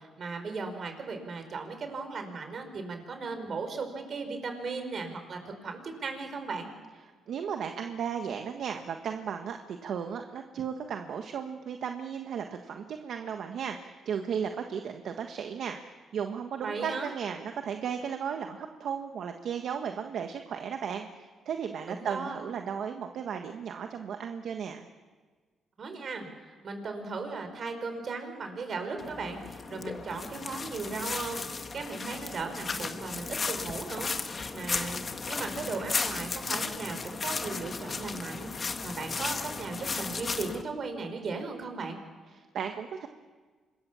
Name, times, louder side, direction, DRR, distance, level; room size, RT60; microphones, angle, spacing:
voice 1, 0.0-6.7 16.6-17.1 21.9-22.4 25.8-42.0, right 4 dB, 50° right, 6 dB, 5.2 m, -37 dB
voice 2, 7.3-15.8 16.1-24.9 42.3-43.1, right 7 dB, 65° right, 5 dB, 1.5 m, -35 dB
sound 1, 29.0-40.6, left 4 dB, 35° left, 1.7 m, -35 dB
26.0 x 22.0 x 7.1 m, 1.4 s
cardioid pair, 90°, 0 cm